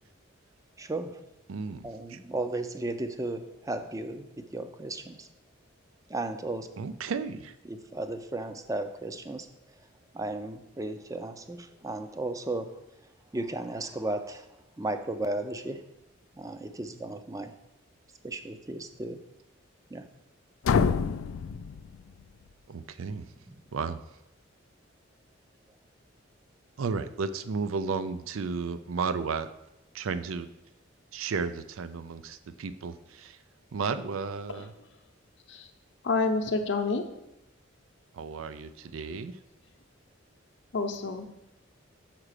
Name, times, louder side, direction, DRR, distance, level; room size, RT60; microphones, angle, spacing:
voice 1, 0.8-1.2 1.8-5.3 6.1-6.7 7.6-9.5 10.1-12.8 13.3-14.5 14.8-15.9 16.3-17.5 18.2-19.2 19.9-20.0 23.5-23.6, right 2 dB, 15° right, 8 dB, 0.5 m, -35 dB
voice 2, 1.5-2.2 6.8-7.5 22.7-23.3 23.7-24.0 26.8-29.5 29.9-30.5 31.1-33.4 33.7-34.7 38.1-39.3, right 5 dB, 80° right, 12 dB, 0.4 m, -33 dB
sound 1, 20.6-22.5, left 6 dB, 80° left, 0.3 m, -27 dB
voice 3, 36.0-37.0 40.7-41.2, left 3 dB, 60° left, 5 dB, 0.7 m, -28 dB
6.0 x 4.9 x 6.6 m, 0.90 s
head